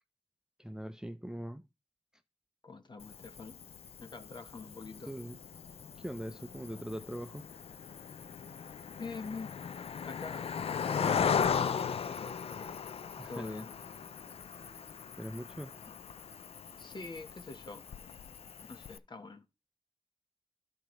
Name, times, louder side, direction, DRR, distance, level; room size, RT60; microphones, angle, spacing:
voice 1, 0.6-1.6 5.1-5.4 6.0-7.5 13.2-13.7 14.6-14.7 15.2-15.8, equal, 5° right, 0.6 m, -41 dB
voice 2, 2.6-3.6 4.0-5.1 9.0-9.5 10.0-10.5 10.9-12.8 13.3-13.8 16.8-17.8 18.6-19.4, left 4 dB, 50° left, 1.1 m, -45 dB
Cricket, 3.0-19.0, left 7 dB, 85° left, 0.4 m, -38 dB
13.0 x 4.6 x 3.1 m
wide cardioid pair, 115°, 10 cm